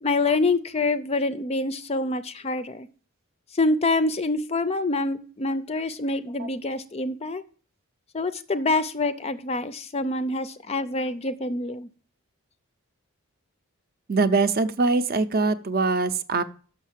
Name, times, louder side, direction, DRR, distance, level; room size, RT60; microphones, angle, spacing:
voice 1, 0.0-2.9 3.5-7.4 8.1-11.9, left 2 dB, 30° left, 13 dB, 0.4 m, -26 dB
voice 2, 14.1-16.4, right 3 dB, 40° right, 12 dB, 0.5 m, -22 dB
6.4 x 6.2 x 7.3 m, 0.41 s
head